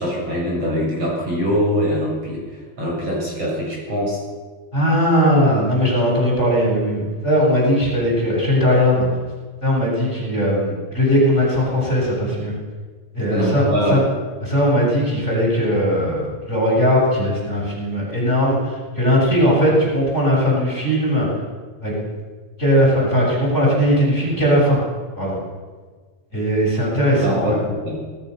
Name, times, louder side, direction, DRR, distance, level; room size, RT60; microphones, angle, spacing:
voice 1, 0.0-4.2 13.3-14.0 27.2-28.0, equal, 35° right, -3 dB, 8.1 m, -23 dB
voice 2, 4.7-9.1 9.6-12.5 13.1-14.0 14.4-21.3 21.8-21.9 22.6-24.8 25.2-25.4 26.3-27.6, equal, 15° left, -4 dB, 7.7 m, -18 dB
27.0 x 19.0 x 6.9 m, 1.5 s
omnidirectional pair, 4.6 m